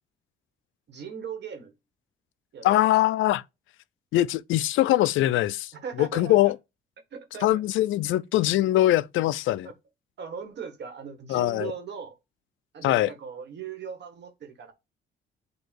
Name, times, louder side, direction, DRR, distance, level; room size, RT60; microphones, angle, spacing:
voice 1, 0.9-1.7 2.5-2.9 5.7-6.5 7.1-7.6 9.5-9.7 10.2-12.2 12.7-14.7, right 7 dB, 60° right, 1.7 m, -39 dB
voice 2, 2.6-3.4 4.1-5.7 6.0-6.5 7.4-9.7 11.3-11.7 12.8-13.1, left 14 dB, 80° left, 0.5 m, -22 dB
8.1 x 2.8 x 4.5 m
cardioid pair, 90°, 20 cm